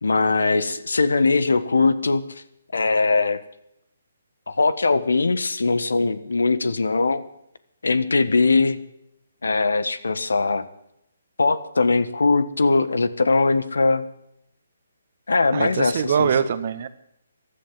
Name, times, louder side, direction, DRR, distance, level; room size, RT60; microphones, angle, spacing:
voice 1, 0.0-2.4 2.7-3.4 4.5-7.2 7.8-8.8 9.4-10.6 11.4-14.0 15.3-16.3, left 3 dB, 80° left, 15 dB, 1.4 m, -21 dB
voice 2, 15.5-16.9, right 7 dB, 50° right, 13 dB, 1.5 m, -23 dB
15.0 x 11.5 x 7.4 m, 0.76 s
hypercardioid pair, 145°, 0 cm